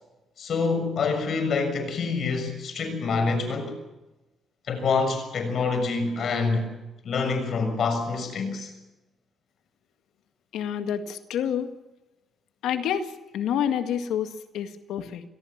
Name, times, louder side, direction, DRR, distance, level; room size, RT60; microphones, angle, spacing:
voice 1, 0.4-3.8 4.7-6.7 7.0-8.7, left 4 dB, 60° left, 6.7 m, -26 dB
voice 2, 10.5-11.7 12.6-15.2, left 9 dB, 80° left, 1.9 m, -28 dB
25.5 x 18.5 x 7.4 m
cardioid pair, 90°, 0 cm